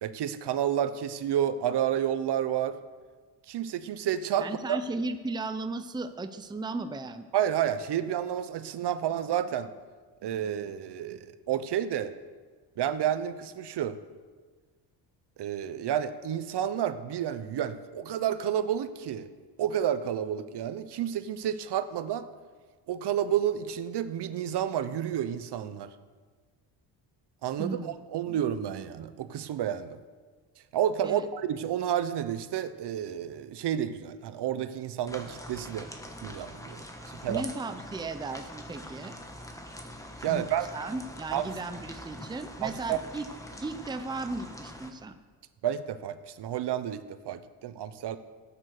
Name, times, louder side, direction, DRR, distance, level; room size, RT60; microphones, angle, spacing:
voice 1, 0.0-2.8 3.5-4.8 7.3-9.7 10.2-12.1 12.8-14.0 15.4-19.3 19.6-22.3 22.9-25.9 27.4-30.0 30.7-35.9 36.2-36.8 37.2-37.5 40.2-40.7 41.3-41.4 42.6-43.0 45.6-48.2, right 10 dB, 65° right, 12 dB, 0.9 m, -30 dB
voice 2, 4.4-7.3 27.6-27.9 28.3-28.4 31.0-31.2 37.3-39.1 40.3-40.5 40.7-43.3 43.6-45.2, right 3 dB, 10° right, 9 dB, 0.6 m, -36 dB
sound 1, 35.1-44.9, left 1 dB, 5° left, 1.3 m, -44 dB
13.5 x 9.2 x 6.6 m, 1.4 s
cardioid pair, 110°, 44 cm